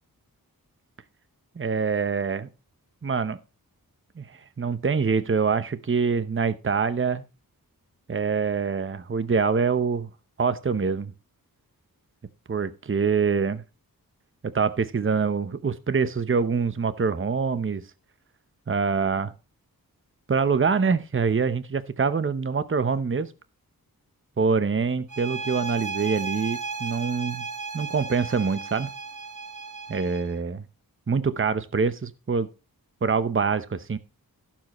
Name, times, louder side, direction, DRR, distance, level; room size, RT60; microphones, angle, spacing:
voice 1, 1.6-2.5 3.0-3.4 4.2-4.3 4.6-7.2 8.1-10.1 10.4-11.1 12.5-13.6 14.4-17.8 18.7-19.3 20.3-23.3 24.4-27.5 27.7-28.9 29.9-30.6 31.1-32.5 33.0-34.0, right 5 dB, 35° right, 0.8 m, -25 dB
sound 1, 25.1-30.4, right 4 dB, 55° right, 1.7 m, -35 dB
16.0 x 7.4 x 3.1 m
wide cardioid pair, 105°, 37 cm